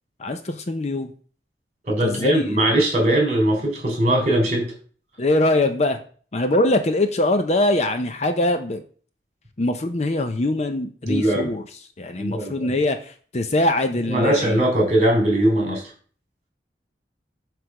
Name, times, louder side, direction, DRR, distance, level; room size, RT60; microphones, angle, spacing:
voice 1, 0.2-1.1 2.0-2.6 5.2-6.0 6.3-8.8 9.6-11.6 12.0-14.6, left 2 dB, 40° left, 8 dB, 0.6 m, -22 dB
voice 2, 1.8-4.7 11.1-11.5 12.2-12.7 14.1-15.8, right 1 dB, 40° right, 0 dB, 3.3 m, -20 dB
7.7 x 3.4 x 6.0 m, 0.43 s
head